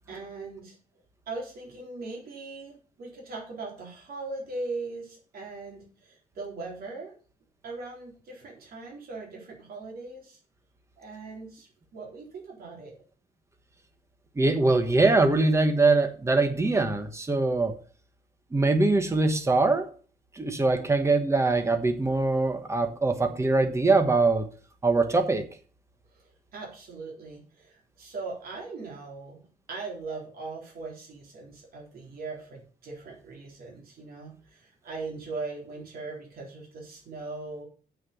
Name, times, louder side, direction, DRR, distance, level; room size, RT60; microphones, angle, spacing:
voice 1, 0.1-0.8 1.3-7.1 7.6-10.4 11.0-13.0 26.1-37.7, right 3 dB, 65° right, -1 dB, 3.9 m, -40 dB
voice 2, 14.4-17.7 18.5-19.9 20.4-24.5 24.8-25.4, right 3 dB, 15° right, 7 dB, 1.3 m, -23 dB
7.6 x 6.6 x 7.1 m, 0.40 s
cardioid pair, 160°, 16 cm